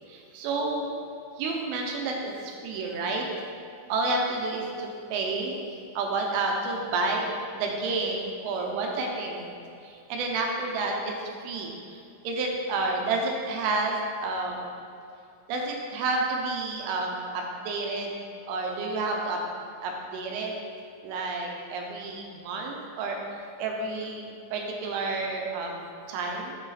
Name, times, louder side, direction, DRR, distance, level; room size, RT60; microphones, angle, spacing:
voice 1, 0.1-0.9 1.4-3.3 3.9-5.6 6.0-9.5 9.8-11.1 11.4-11.7 12.2-14.7 15.5-18.1 18.5-19.4 19.8-20.5 21.0-23.2 23.6-26.5, right 3 dB, 80° right, 0 dB, 3.0 m, -30 dB
7.8 x 6.1 x 4.1 m, 2.5 s
omnidirectional pair, 6.0 m